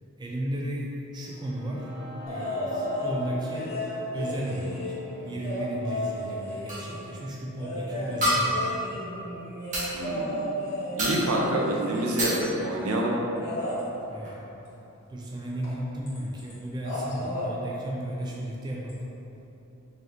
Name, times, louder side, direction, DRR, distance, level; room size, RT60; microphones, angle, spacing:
voice 1, 0.2-1.9 2.3-3.8 4.1-5.0 5.2-9.0 14.1-14.5 15.1-19.0, right 1 dB, 20° right, -3 dB, 0.3 m, -34 dB
sound 1, 1.2-9.1, right 2 dB, ahead, 1.4 m, -45 dB
sound 2, 2.3-3.2 3.5-7.1 7.6-12.4 13.3-13.8 15.6-15.8 16.1-16.5 16.8-17.5 18.9-19.0, left 1 dB, 45° left, 1.3 m, -34 dB
sound 3, 6.7-6.9 8.2-8.8 9.7-9.9 11.0-11.4 12.2-12.5 13.8-13.9 14.2-14.3, equal, 35° right, 1.1 m, -27 dB
voice 2, 9.9-10.5 10.9-13.2, right 1 dB, 85° right, -2 dB, 0.6 m, -27 dB
3.8 x 3.0 x 3.4 m, 3.0 s
head